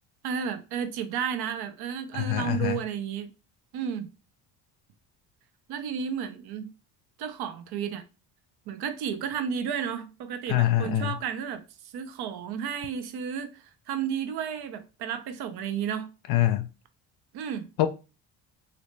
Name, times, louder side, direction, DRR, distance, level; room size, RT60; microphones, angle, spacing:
voice 1, 0.2-3.3 3.7-4.1 5.7-6.7 7.2-8.0 8.7-16.1 17.3-17.7, right 7 dB, 65° right, 0.7 m, -32 dB
voice 2, 2.1-2.8 10.5-11.2 16.3-16.7 17.8-17.9, left 14 dB, 65° left, 0.5 m, -24 dB
3.0 x 2.7 x 3.2 m
supercardioid pair, 80°, 41 cm